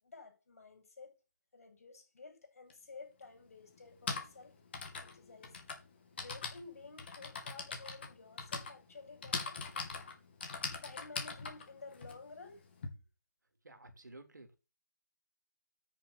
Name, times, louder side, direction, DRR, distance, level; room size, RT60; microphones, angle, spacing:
voice 1, 0.0-1.1 1.5-4.5 4.9-5.6 6.2-9.7 10.8-12.6, left 4 dB, 50° left, 6.3 m, -52 dB
Typing, 2.7-2.8 3.8-12.9, left 4 dB, 35° left, 2.6 m, -42 dB
voice 2, 13.6-14.6, right 2 dB, 75° right, 3.3 m, -53 dB
9.3 x 7.1 x 6.6 m
figure-of-eight pair, 160°, 10 cm